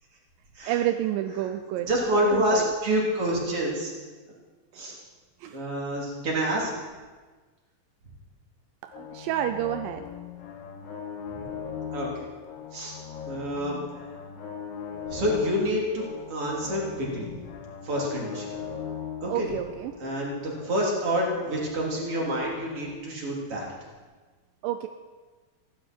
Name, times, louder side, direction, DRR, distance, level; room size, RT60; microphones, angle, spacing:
voice 1, 0.7-1.9 2.3-2.6 5.4-5.5 8.8-10.0 19.3-20.0 24.6-24.9, right 12 dB, 80° right, 8 dB, 2.0 m, -29 dB
voice 2, 1.9-3.9 4.8-4.9 5.5-6.7 11.4-11.5 11.9-12.2 12.7-12.9 13.3-13.8 15.1-16.0 16.3-17.3 17.8-18.5 19.2-19.5 20.0-23.7, equal, 35° right, -3 dB, 4.0 m, -27 dB
Front Line, 8.9-23.0, left 7 dB, 85° left, 3.6 m, -39 dB
18.0 x 16.0 x 4.6 m, 1.4 s
omnidirectional pair, 4.6 m